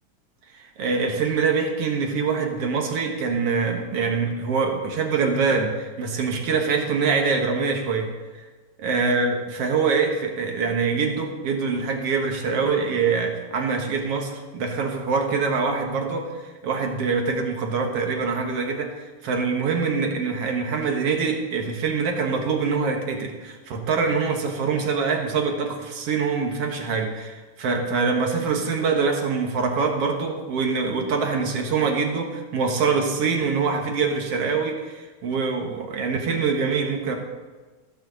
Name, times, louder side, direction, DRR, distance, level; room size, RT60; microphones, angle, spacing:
voice 1, 0.5-8.1 8.8-16.3 16.6-37.2, right 5 dB, 60° right, 3 dB, 2.1 m, -24 dB
15.0 x 6.7 x 6.3 m, 1.3 s
omnidirectional pair, 3.4 m